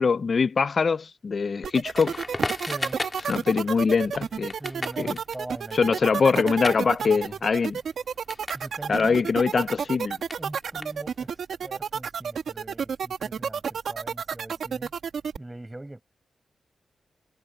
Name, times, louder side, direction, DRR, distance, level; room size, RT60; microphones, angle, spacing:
voice 1, 0.0-2.2 3.3-4.5 5.0-5.2 5.7-7.8 8.9-10.2, left 5 dB, 50° left, 0.3 m, -23 dB
sound 1, 1.6-15.4, right 7 dB, 75° right, 1.5 m, -30 dB
Crackle, 1.9-8.7 8.9-11.4, left 2 dB, 20° left, 2.7 m, -36 dB
voice 2, 2.6-3.0 4.6-5.9 6.3-6.5 7.0-7.4 8.5-9.2 10.4-11.3 11.6-14.9 15.4-16.0, right 1 dB, 15° right, 7.1 m, -41 dB
wide cardioid pair, 105°, 0 cm